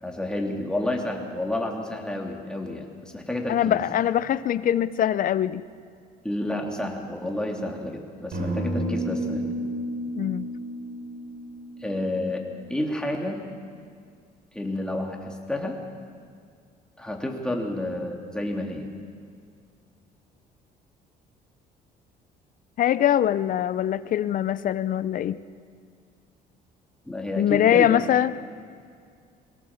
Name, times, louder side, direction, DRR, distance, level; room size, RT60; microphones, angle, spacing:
voice 1, 0.0-3.8 6.2-9.5 11.8-13.4 14.5-15.8 17.0-18.9 27.0-28.1, left 1 dB, 5° left, 1 dB, 3.0 m, -30 dB
voice 2, 3.5-5.6 10.2-10.5 22.8-25.4 27.4-28.3, left 11 dB, 55° left, 15 dB, 0.7 m, -22 dB
sound 1, 8.3-12.5, equal, 65° right, 4.5 m, -31 dB
23.5 x 17.0 x 7.3 m, 2.2 s
cardioid pair, 110°, 17 cm